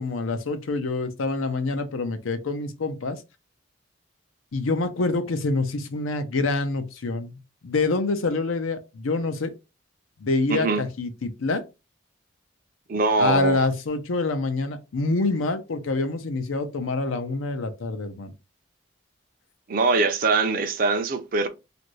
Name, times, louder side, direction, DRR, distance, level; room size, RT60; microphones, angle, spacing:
voice 1, 0.0-3.2 4.5-9.5 10.2-11.6 13.2-18.3, left 3 dB, 90° left, 0.6 m, -26 dB
voice 2, 10.5-10.8 12.9-13.7 19.7-21.5, right 3 dB, 45° right, 0.4 m, -22 dB
2.6 x 2.5 x 3.0 m
head